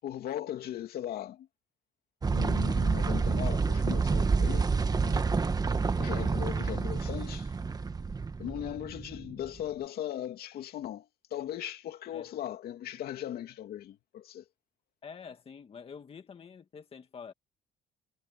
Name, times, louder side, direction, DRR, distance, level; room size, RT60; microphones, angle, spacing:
voice 1, 0.0-1.5 2.3-4.6 5.0-5.2 6.0-7.5 8.4-11.1 11.3-14.4, left 11 dB, 65° left, 2.8 m, -38 dB
sound 1, 2.2-9.6, right 4 dB, 25° right, 1.4 m, -28 dB
voice 2, 15.0-17.3, left 6 dB, 35° left, 2.2 m, -48 dB
cardioid pair, 110°, 17 cm